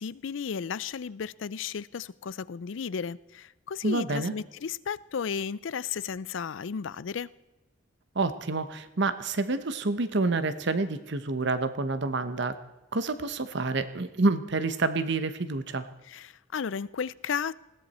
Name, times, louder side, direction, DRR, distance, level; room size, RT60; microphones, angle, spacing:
voice 1, 0.0-7.3 16.1-17.5, left 6 dB, 70° left, 20 dB, 0.4 m, -34 dB
voice 2, 3.8-4.3 8.1-12.6 12.9-15.9, right 3 dB, 65° right, 12 dB, 1.0 m, -28 dB
20.0 x 16.5 x 4.3 m, 1.1 s
head